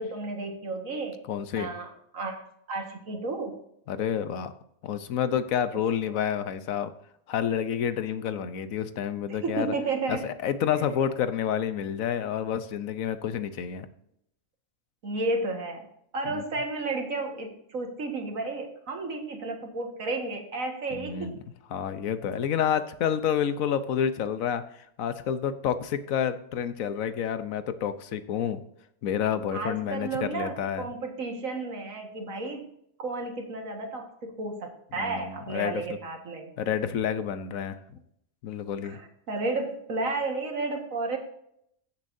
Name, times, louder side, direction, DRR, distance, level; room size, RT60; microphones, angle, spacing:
voice 1, 0.0-1.2 1.6-2.4 2.7-3.5 6.0-6.2 9.3-10.3 10.7-10.8 15.0-15.9 16.1-21.3 29.5-32.7 33.0-36.5 38.8-41.2, right 3 dB, 75° right, 3 dB, 2.1 m, -32 dB
voice 2, 1.3-1.7 3.9-4.5 4.8-6.9 7.3-9.7 10.1-13.9 16.3-16.4 20.9-21.4 21.7-24.6 25.0-28.6 29.0-30.9 35.0-35.8 36.6-37.8 38.4-39.0, left 8 dB, 80° left, 12 dB, 1.2 m, -29 dB
16.0 x 7.4 x 2.7 m, 0.73 s
omnidirectional pair, 1.4 m